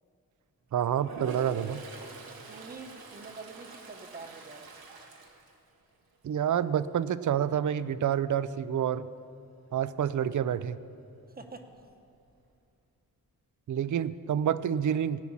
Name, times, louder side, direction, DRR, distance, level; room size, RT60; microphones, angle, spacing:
voice 1, 0.7-1.8 6.2-9.0 9.7-10.8 13.7-15.2, right 9 dB, 55° right, 16 dB, 0.5 m, -28 dB
Toilet flush, 1.0-6.2 6.6-6.9 11.4-11.5 11.8-12.5, right 3 dB, 85° right, 1.5 m, -45 dB
voice 2, 2.5-4.7 11.4-11.7, right 4 dB, 25° right, 6 dB, 0.9 m, -46 dB
16.0 x 5.9 x 8.6 m, 2.5 s
wide cardioid pair, 125°, 35 cm